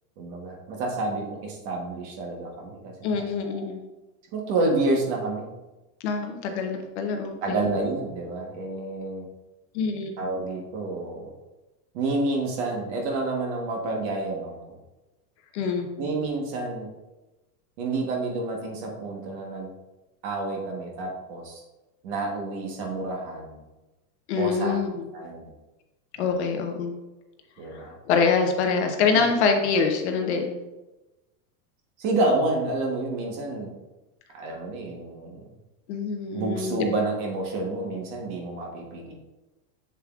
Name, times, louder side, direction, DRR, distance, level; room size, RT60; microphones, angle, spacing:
voice 1, 0.2-3.7 4.3-5.5 7.4-9.3 10.2-11.3 11.9-14.8 16.0-16.9 17.8-19.7 20.2-21.6 22.0-23.6 24.4-24.8 25.1-25.5 26.2-26.6 27.6-27.9 32.0-33.7 34.3-35.4 36.3-39.1, right 2 dB, 35° right, 0 dB, 1.2 m, -29 dB
voice 2, 3.0-3.8 6.0-7.6 9.7-10.1 15.5-15.9 24.3-25.1 26.2-26.9 27.7-30.6 35.9-36.8, left 5 dB, 45° left, 4 dB, 0.8 m, -25 dB
7.4 x 7.1 x 2.4 m, 1.1 s
supercardioid pair, 175°, 46 cm